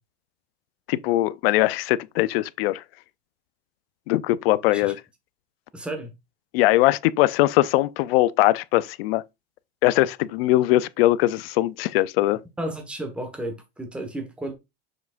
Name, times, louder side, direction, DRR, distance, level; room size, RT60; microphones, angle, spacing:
voice 1, 0.9-2.8 4.1-5.0 6.5-9.2 9.8-12.4, left 17 dB, 65° left, 0.5 m, -21 dB
voice 2, 5.7-6.1 12.6-14.5, right 1 dB, 5° right, 1.3 m, -33 dB
7.2 x 6.0 x 2.5 m
supercardioid pair, 170°, 32 cm